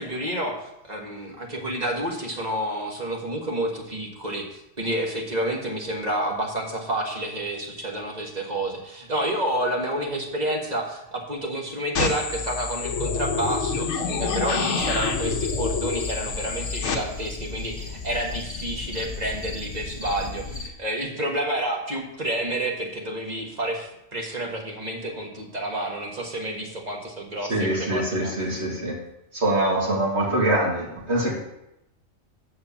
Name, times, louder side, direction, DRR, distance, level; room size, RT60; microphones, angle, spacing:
voice 1, 0.0-28.3, right 1 dB, 35° right, 0 dB, 1.5 m, -29 dB
sound 1, 11.9-16.9, left 5 dB, 65° left, 1.2 m, -27 dB
sound 2, 14.7-20.7, left 4 dB, 25° left, 1.1 m, -36 dB
voice 2, 27.5-29.0 29.3-31.3, right 1 dB, 55° right, -4 dB, 2.4 m, -24 dB
8.5 x 4.7 x 7.2 m, 0.83 s
omnidirectional pair, 1.3 m